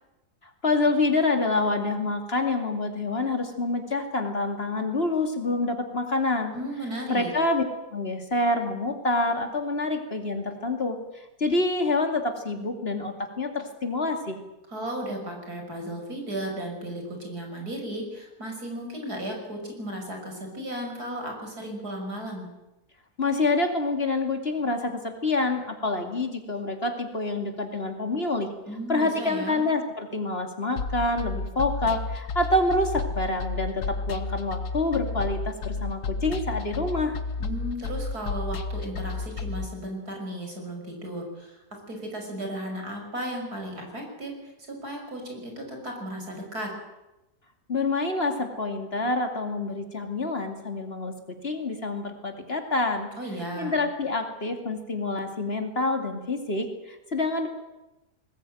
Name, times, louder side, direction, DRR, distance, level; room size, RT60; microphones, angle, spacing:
voice 1, 0.6-6.5 7.1-7.6 7.9-14.4 23.2-28.5 28.9-37.2 47.7-51.1 51.4-53.1 53.6-57.5, left 2 dB, 40° left, 5 dB, 2.7 m, -27 dB
voice 2, 6.5-7.3 14.7-22.5 28.7-29.7 37.4-41.6 41.9-44.3 44.7-46.7 53.2-53.8, right 1 dB, 75° right, 2 dB, 6.4 m, -35 dB
sound 1, 30.8-39.6, left 4 dB, 85° left, 1.8 m, -32 dB
20.5 x 20.0 x 9.2 m, 0.99 s
omnidirectional pair, 1.7 m